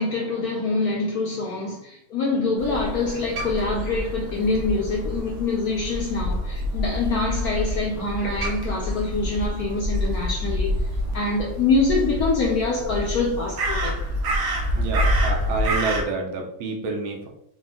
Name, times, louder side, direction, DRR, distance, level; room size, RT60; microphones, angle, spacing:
voice 1, 0.0-10.7 11.1-14.0, left 3 dB, 70° left, -2 dB, 0.9 m, -25 dB
Crow, 2.6-16.0, equal, 65° right, 1.1 m, -27 dB
voice 2, 14.7-17.3, right 4 dB, 85° right, 1 dB, 1.6 m, -28 dB
4.2 x 2.3 x 3.5 m, 0.74 s
omnidirectional pair, 2.2 m